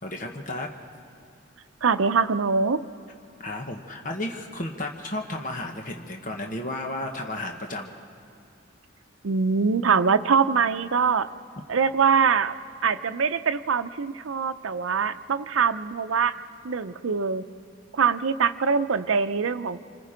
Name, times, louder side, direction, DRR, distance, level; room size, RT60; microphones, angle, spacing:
voice 1, 0.0-0.7 3.4-8.0, left 1 dB, 40° left, 2 dB, 1.3 m, -33 dB
voice 2, 1.8-2.8 9.2-11.3 11.7-12.5 12.8-16.4 16.6-17.4 17.9-19.8, right 5 dB, 85° right, 10 dB, 0.6 m, -23 dB
27.5 x 23.5 x 5.1 m, 2.5 s
head